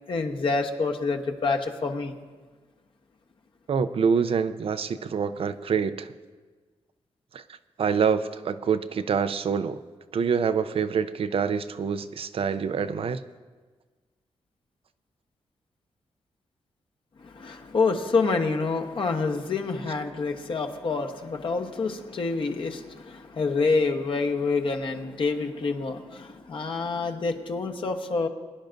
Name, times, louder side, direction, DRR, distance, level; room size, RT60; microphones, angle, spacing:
voice 1, 0.1-2.1 17.2-28.3, left 4 dB, 50° left, 3 dB, 1.1 m, -27 dB
voice 2, 3.7-6.1 7.3-7.4 7.8-9.8 10.1-13.2, right 6 dB, 60° right, 11 dB, 0.5 m, -26 dB
22.5 x 10.5 x 2.6 m, 1.4 s
wide cardioid pair, 125°, 11 cm